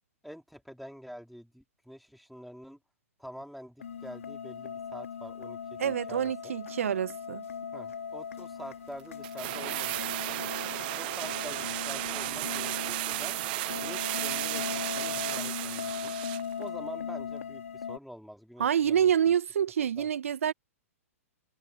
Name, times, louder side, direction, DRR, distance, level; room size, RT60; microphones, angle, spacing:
voice 1, 0.2-2.8 3.2-6.5 7.7-10.4 10.9-13.4 13.8-16.1 16.6-19.3 20.0-20.1, equal, ahead, 4.4 m, -46 dB
sound 1, 3.8-18.0, left 7 dB, 65° left, 2.6 m, -39 dB
voice 2, 5.8-7.4 18.6-20.5, right 9 dB, 65° right, 1.4 m, -27 dB
sound 2, 9.2-16.5 16.8-16.9, right 21 dB, 40° right, 0.3 m, -34 dB
figure-of-eight pair, 110°, 8 cm